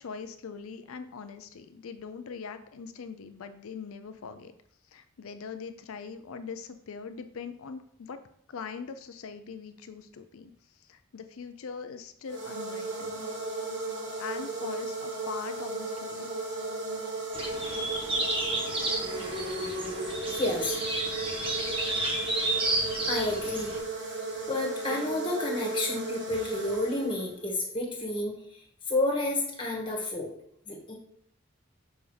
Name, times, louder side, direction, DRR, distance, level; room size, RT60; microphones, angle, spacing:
voice 1, 0.0-4.5 4.9-8.2 8.5-13.3 14.2-16.4, left 5 dB, 85° left, 10 dB, 0.5 m, -42 dB
sound 1, 12.3-27.5, right 2 dB, 55° right, 1.2 m, -35 dB
sound 2, 17.3-23.8, right 2 dB, 25° right, 1.1 m, -31 dB
voice 2, 20.3-20.7 21.6-22.0 23.1-23.7 24.5-30.3 30.7-30.9, left 2 dB, 25° left, -1 dB, 1.6 m, -31 dB
7.0 x 5.2 x 3.3 m, 0.69 s
head